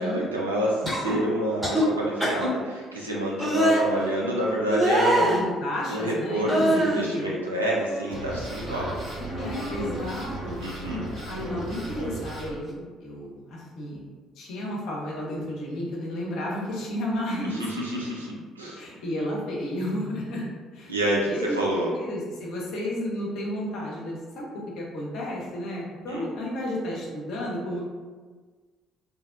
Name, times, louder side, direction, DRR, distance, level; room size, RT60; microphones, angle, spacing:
voice 1, 0.0-5.4 5.9-9.1 10.6-11.0 17.6-18.8 20.9-21.9 26.1-26.3, right 1 dB, 85° right, -4 dB, 0.4 m, -28 dB
sound 1, 0.8-1.2 1.6-1.8 2.2-2.5 3.4-3.8 4.7-5.4 6.5-7.1 7.5-8.4 8.7-8.9 9.4-10.1 11.4-11.6, equal, 10° right, 0.9 m, -25 dB
voice 2, 5.2-7.2 9.1-10.6 10.9-14.0 14.4-17.6 18.8-20.4 20.7-20.9 21.3-27.8, left 1 dB, 60° left, -3 dB, 0.6 m, -32 dB
sound 2, 8.1-12.5, right 2 dB, 50° right, 1.4 m, -36 dB
2.4 x 2.0 x 2.4 m, 1.4 s
figure-of-eight pair, 50°, 0 cm